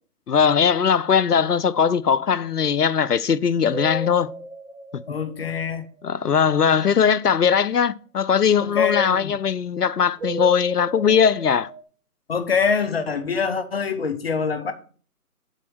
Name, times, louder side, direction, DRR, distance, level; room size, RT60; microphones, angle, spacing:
voice 1, 0.3-4.3 4.9-5.0 6.0-11.7, left 7 dB, 90° left, 0.7 m, -20 dB
sound 1, 3.7-6.1 10.2-11.8, right 2 dB, 45° right, 1.5 m, -34 dB
voice 2, 5.1-5.8 8.6-9.4 12.3-14.7, left 6 dB, 40° left, 1.0 m, -24 dB
7.5 x 4.3 x 6.7 m
figure-of-eight pair, 150°, 46 cm